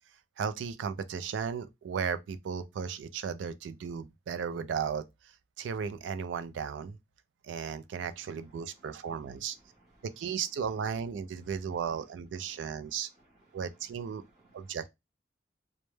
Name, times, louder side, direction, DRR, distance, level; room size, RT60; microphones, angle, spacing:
voice 1, 0.4-5.0 5.6-7.0 7.4-9.6 10.0-13.1 13.5-14.2 14.5-14.9, right 7 dB, 90° right, 0.3 m, -35 dB
voice 2, 8.0-10.1 11.4-11.5 12.4-14.8, right 2 dB, 20° right, 0.7 m, -65 dB
2.1 x 2.1 x 3.1 m
head